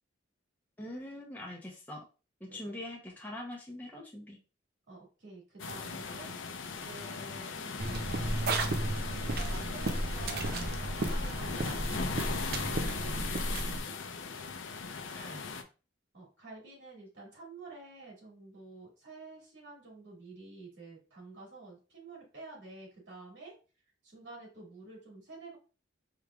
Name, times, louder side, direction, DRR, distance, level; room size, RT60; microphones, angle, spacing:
voice 1, 0.8-2.0 2.4-4.4 15.1-15.4, left 1 dB, 10° left, -2 dB, 0.8 m, -43 dB
voice 2, 4.9-6.3 6.7-8.0 8.5-12.2 12.5-13.9 16.1-23.5 24.0-25.6, right 3 dB, 70° right, -3 dB, 2.2 m, -50 dB
sound 1, 5.6-15.6, left 5 dB, 80° left, 0.5 m, -39 dB
Sound Walk - Walking, 7.8-13.8, right 1 dB, 55° right, 0.5 m, -33 dB
4.7 x 3.3 x 2.4 m, 0.34 s
head